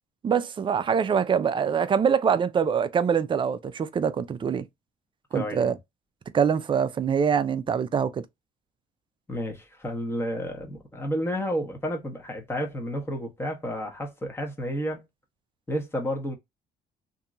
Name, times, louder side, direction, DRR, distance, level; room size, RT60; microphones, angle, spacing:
voice 1, 0.2-4.6 5.3-5.7 6.3-8.2, right 7 dB, 30° right, 0.4 m, -24 dB
voice 2, 5.3-5.7 9.3-15.0 15.7-16.3, equal, 15° left, 1.1 m, -31 dB
2.8 x 2.6 x 2.4 m
cardioid pair, 110°, 17 cm